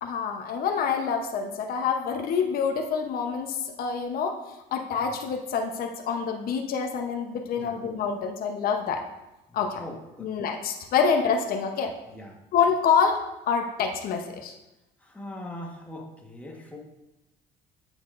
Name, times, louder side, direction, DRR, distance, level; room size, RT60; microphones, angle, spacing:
voice 1, 0.0-4.4 4.7-9.0 9.5-9.8 10.2-11.9 12.5-14.5, left 6 dB, 60° left, 4 dB, 0.8 m, -26 dB
voice 2, 9.8-10.3 12.1-12.4 15.0-16.8, left 1 dB, 10° left, -1 dB, 1.2 m, -40 dB
8.3 x 7.9 x 2.5 m, 0.98 s
cardioid pair, 110°, 17 cm